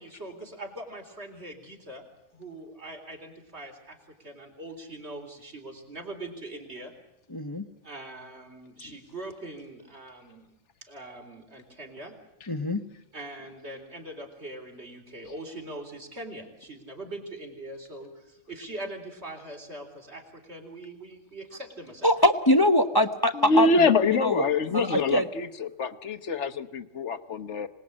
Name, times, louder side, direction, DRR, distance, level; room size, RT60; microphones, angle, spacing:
voice 1, 0.0-2.1 2.3-6.9 7.8-10.4 10.8-12.1 13.1-22.1, right 1 dB, 55° right, 3 dB, 4.2 m, -42 dB
voice 2, 7.3-7.7 12.5-12.8 22.0-23.7 24.1-24.5 24.7-25.3, left 1 dB, 20° left, 8 dB, 0.8 m, -23 dB
voice 3, 23.3-27.7, left 3 dB, 65° left, 10 dB, 1.4 m, -25 dB
26.0 x 19.5 x 8.7 m, 0.85 s
omnidirectional pair, 1.3 m